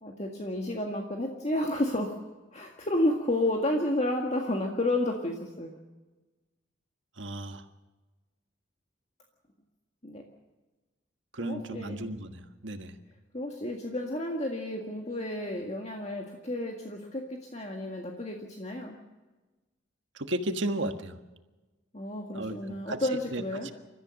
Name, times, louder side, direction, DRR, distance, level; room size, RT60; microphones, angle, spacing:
voice 1, 0.0-2.1 2.5-5.7 10.0-10.2 11.4-12.0 13.3-19.0 21.9-23.7, left 1 dB, 35° left, 1 dB, 1.8 m, -31 dB
voice 2, 7.2-7.6 11.3-13.0 20.1-21.2 22.3-23.7, right 1 dB, 70° right, 7 dB, 1.6 m, -34 dB
29.0 x 14.0 x 6.5 m, 1.2 s
head